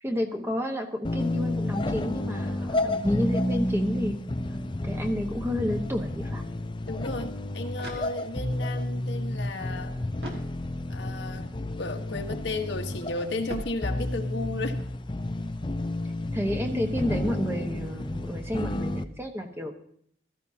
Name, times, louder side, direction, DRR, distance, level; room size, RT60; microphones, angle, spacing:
voice 1, 0.0-4.3 4.8-6.4 16.3-19.7, left 1 dB, 10° right, 4 dB, 1.2 m, -30 dB
sound 1, 1.0-19.0, left 1 dB, 25° left, 0.5 m, -31 dB
voice 2, 6.9-9.9 10.9-14.8, left 2 dB, 65° left, 5 dB, 1.3 m, -34 dB
sound 2, 7.7-8.6 10.2-11.1 13.5-14.4, right 1 dB, 55° right, 2.3 m, -42 dB
16.0 x 14.0 x 2.8 m, 0.65 s
head